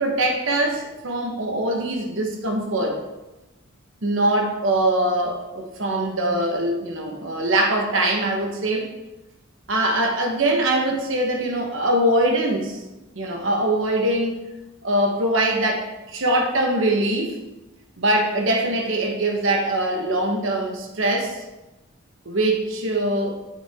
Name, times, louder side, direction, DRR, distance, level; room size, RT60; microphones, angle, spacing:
voice 1, 0.0-3.0 4.0-8.9 9.7-12.8 13.1-14.4 14.8-17.4 18.0-21.4 22.2-23.3, right 1 dB, 65° right, 2 dB, 1.2 m, -22 dB
8.6 x 6.5 x 3.6 m, 1.0 s
head